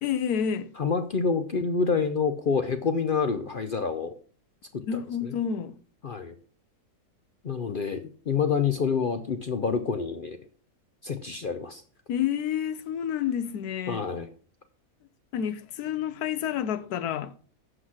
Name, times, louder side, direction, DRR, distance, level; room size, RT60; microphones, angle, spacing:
voice 1, 0.0-0.7 4.9-5.8 12.1-14.1 15.3-17.3, left 8 dB, 80° left, 1.3 m, -29 dB
voice 2, 0.8-4.1 4.7-5.3 6.0-6.3 7.4-10.4 11.0-11.8 13.9-14.3, left 5 dB, 55° left, 0.6 m, -27 dB
7.8 x 5.9 x 6.2 m
omnidirectional pair, 1.6 m